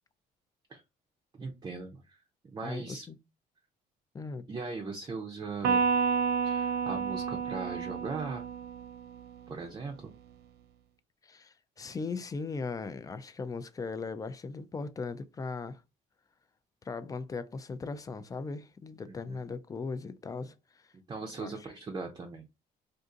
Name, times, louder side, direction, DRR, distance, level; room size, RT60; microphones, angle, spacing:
voice 1, 1.4-2.2 2.5-3.1 4.5-5.9 6.4-8.4 9.5-10.1 19.1-19.4 21.1-22.4, right 4 dB, 25° right, 0.6 m, -39 dB
voice 2, 2.6-3.2 4.1-4.5 11.2-15.8 16.8-20.9 21.4-21.5, left 4 dB, 20° left, 0.3 m, -38 dB
Electric guitar, 5.6-9.2, right 6 dB, 80° right, 0.6 m, -30 dB
2.6 x 2.5 x 3.7 m
cardioid pair, 110°, 17 cm